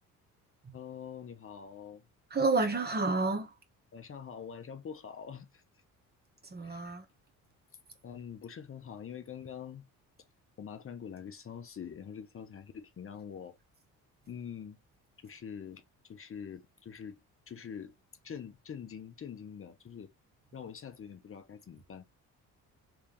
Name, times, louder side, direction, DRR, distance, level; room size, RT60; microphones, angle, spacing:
voice 1, 0.7-2.0 3.9-5.6 6.6-6.8 8.0-9.9 10.6-13.5 14.3-14.8 15.2-17.2 17.5-17.9 18.2-20.1 20.5-22.0, left 7 dB, 35° left, 0.8 m, -45 dB
voice 2, 2.3-3.6 6.4-7.1, right 3 dB, 25° right, 1.1 m, -30 dB
3.4 x 3.4 x 3.0 m
supercardioid pair, 85°, 37 cm